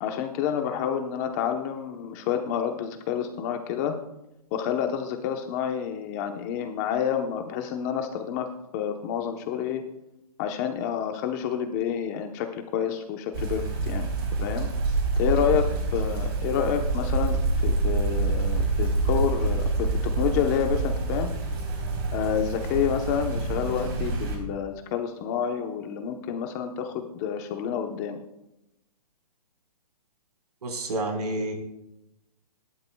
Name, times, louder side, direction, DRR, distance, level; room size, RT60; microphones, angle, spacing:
voice 1, 0.0-3.9 4.5-8.5 8.7-9.8 10.4-14.1 14.4-14.7 15.2-15.7 15.9-17.4 17.6-21.3 22.1-28.2, left 8 dB, 25° left, 5 dB, 1.0 m, -29 dB
sound 1, 13.3-24.4, right 3 dB, 40° right, 3.9 m, -27 dB
voice 2, 30.6-31.5, right 1 dB, 75° right, 3 dB, 4.7 m, -29 dB
25.0 x 12.0 x 2.3 m, 0.90 s
hypercardioid pair, 160°, 20 cm